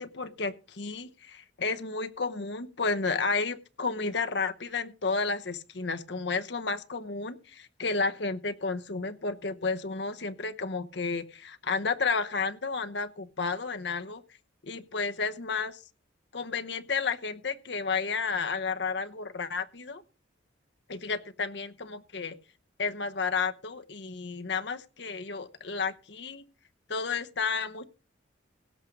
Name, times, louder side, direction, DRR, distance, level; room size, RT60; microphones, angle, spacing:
voice 1, 0.0-14.2 14.6-15.8 16.3-20.0 20.9-22.4 22.8-26.4 26.9-27.9, left 4 dB, 65° left, 10 dB, 0.9 m, -32 dB
17.0 x 6.0 x 5.1 m, 0.34 s
head